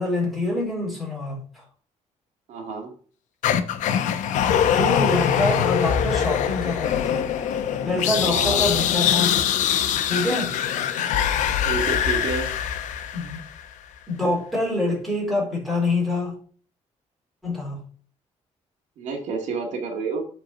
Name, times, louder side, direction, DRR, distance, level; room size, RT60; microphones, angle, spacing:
voice 1, 0.0-1.6 4.7-7.3 7.8-9.4 10.1-10.5 13.1-13.4 14.1-16.4 17.4-17.8, left 2 dB, ahead, 4.3 m, -26 dB
voice 2, 2.5-2.9 8.2-8.6 11.6-12.5 19.0-20.2, right 4 dB, 70° right, 2.0 m, -29 dB
sound 1, 3.4-13.6, left 9 dB, 85° left, 0.9 m, -23 dB
8.1 x 4.6 x 6.4 m
cardioid pair, 165°, 12 cm